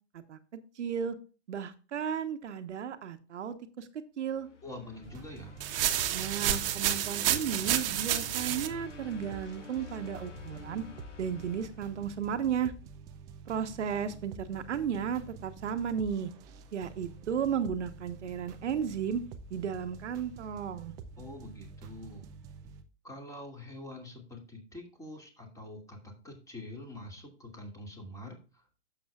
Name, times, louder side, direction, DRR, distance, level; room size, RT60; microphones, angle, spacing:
voice 1, 0.3-1.2 1.5-3.9 4.2-4.5 6.1-10.8 11.2-12.7 13.5-16.3 16.7-19.2 19.5-20.9, right 7 dB, 75° right, 9 dB, 1.2 m, -34 dB
sound 1, 4.2-12.6, left 3 dB, 80° left, 2.2 m, -49 dB
voice 2, 4.6-5.6 21.2-22.3 23.0-28.6, left 1 dB, 10° left, 3 dB, 2.5 m, -45 dB
sound 2, 5.0-22.8, right 5 dB, 10° right, 0.3 m, -49 dB
sound 3, 5.6-8.7, right 11 dB, 50° right, 1.2 m, -29 dB
11.5 x 7.1 x 2.4 m, 0.34 s
hypercardioid pair, 130°, 36 cm